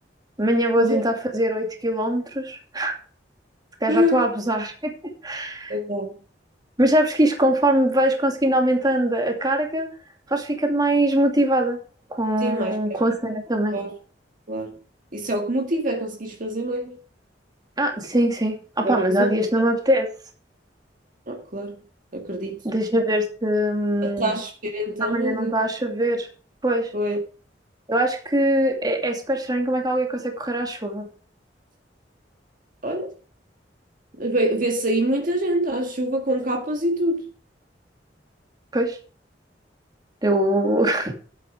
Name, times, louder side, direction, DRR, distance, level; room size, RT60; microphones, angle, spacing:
voice 1, 0.4-3.0 3.8-5.7 6.8-9.9 10.3-11.8 12.1-13.8 17.8-20.1 22.6-24.4 25.0-26.3 26.6-26.9 27.9-31.1 38.7-39.0 40.2-41.1, right 1 dB, 25° right, 2.5 m, -22 dB
voice 2, 3.9-4.2 5.7-6.2 12.4-13.0 13.7-13.9 14.5-14.7 15.1-17.0 18.8-19.6 21.3-21.8 22.1-22.6 24.0-25.5 26.9-27.2 32.8-33.1 34.2-37.2, right 1 dB, 50° right, 1.9 m, -25 dB
12.0 x 8.8 x 5.0 m
head